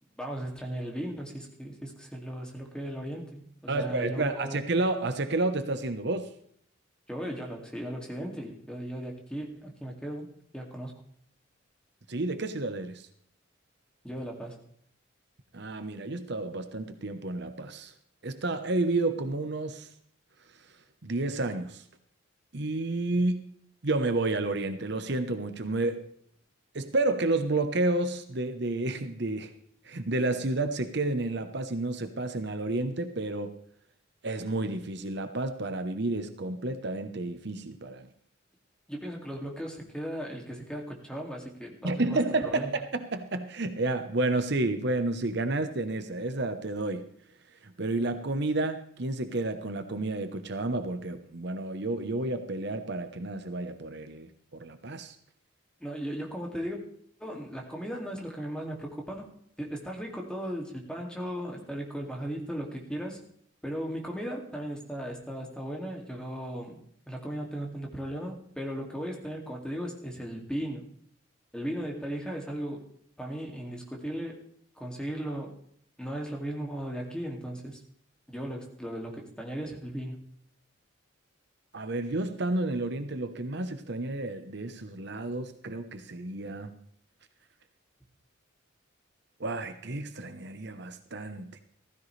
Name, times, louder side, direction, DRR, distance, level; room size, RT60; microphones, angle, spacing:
voice 1, 0.2-4.6 7.1-10.9 14.0-14.6 38.9-42.7 55.8-56.8 57.2-59.3 59.6-63.2 63.6-66.8 67.1-70.8 71.5-72.9 73.2-74.4 74.8-75.5 76.0-77.8 78.3-80.2, equal, 5° left, 0 dB, 2.4 m, -37 dB
voice 2, 3.7-6.3 12.1-13.1 15.5-17.9 18.2-19.9 21.0-21.8 22.5-23.5 23.8-26.1 26.7-29.5 29.8-33.5 34.2-38.1 41.8-47.1 47.6-55.1 81.7-86.7 89.4-91.6, right 2 dB, 55° right, 8 dB, 1.0 m, -30 dB
15.5 x 15.0 x 3.3 m, 0.66 s
head